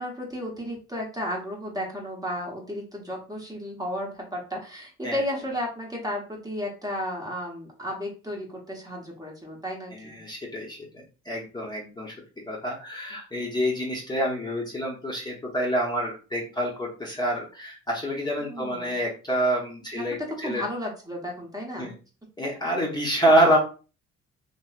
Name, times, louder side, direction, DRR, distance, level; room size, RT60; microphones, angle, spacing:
voice 1, 0.0-10.2 18.4-19.0 19.9-20.0 20.4-21.9, equal, 10° right, -2 dB, 1.0 m, -33 dB
voice 2, 9.9-20.6 21.8-21.9 22.4-23.6, right 1 dB, 15° left, -3 dB, 0.9 m, -27 dB
3.0 x 2.7 x 2.4 m, 0.34 s
cardioid pair, 90°, 30 cm